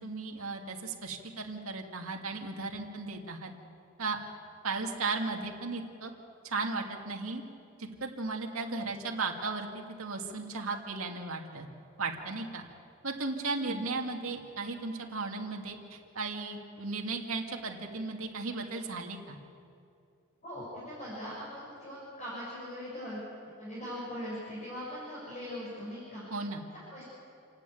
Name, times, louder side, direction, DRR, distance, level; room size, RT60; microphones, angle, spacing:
voice 1, 0.0-3.5 4.0-4.2 4.6-6.1 6.4-7.4 7.8-11.7 12.0-12.6 13.0-19.4 26.3-26.6, right 3 dB, 70° right, 2 dB, 2.3 m, -36 dB
voice 2, 13.5-13.8 20.4-23.2 23.6-26.2 26.7-27.0, equal, 35° left, -7 dB, 6.2 m, -40 dB
28.5 x 11.5 x 9.3 m, 2.5 s
head